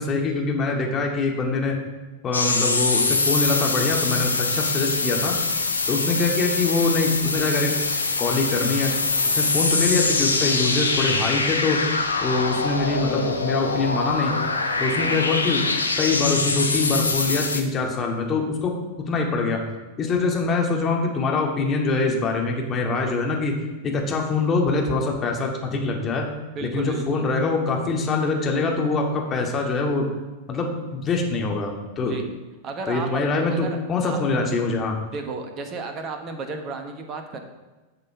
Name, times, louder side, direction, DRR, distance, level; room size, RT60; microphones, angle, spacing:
voice 1, 0.0-1.8 2.2-5.3 5.9-7.7 8.2-8.9 9.3-11.8 12.2-14.3 14.8-15.6 16.0-18.7 19.1-19.6 20.0-23.6 23.8-26.2 26.6-30.1 30.5-32.1 32.9-34.9, left 3 dB, 25° left, 0 dB, 2.2 m, -24 dB
sound 1, 2.3-17.6, left 3 dB, 80° left, 1.0 m, -24 dB
voice 2, 5.9-6.2 15.0-15.2 26.5-27.3 32.0-32.2 32.6-33.2 33.5-34.2 35.1-37.4, right 4 dB, 30° right, 5 dB, 1.3 m, -33 dB
11.0 x 6.7 x 4.7 m, 1.2 s
figure-of-eight pair, 90°, 0 cm